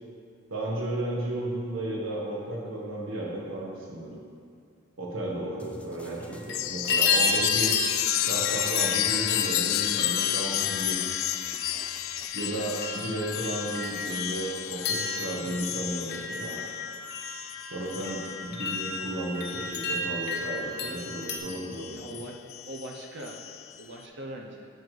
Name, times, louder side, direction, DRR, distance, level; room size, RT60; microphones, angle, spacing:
voice 1, 0.5-4.1 5.0-7.7 8.3-11.1 12.3-16.6 17.7-22.0, right 1 dB, 85° right, -3 dB, 1.4 m, -33 dB
sound 1, 5.6-12.3, left 1 dB, 5° left, 0.4 m, -49 dB
sound 2, 6.2-6.6 6.9-21.4, left 3 dB, 55° left, 0.9 m, -33 dB
Chime, 6.5-20.5 21.0-23.8, left 13 dB, 80° left, 0.3 m, -31 dB
voice 2, 21.9-22.3 22.7-23.4 23.8-24.7, right 1 dB, 60° right, 0 dB, 0.7 m, -40 dB
8.2 x 6.8 x 3.3 m, 2.3 s
head